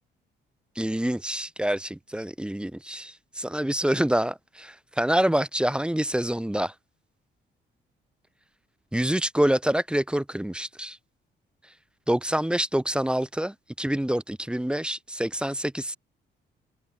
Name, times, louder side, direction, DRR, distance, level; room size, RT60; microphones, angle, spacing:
voice 1, 0.8-6.7 8.9-11.0 12.1-16.0, right 1 dB, 5° right, 1.1 m, -26 dB
cardioid pair, 90°, 20 cm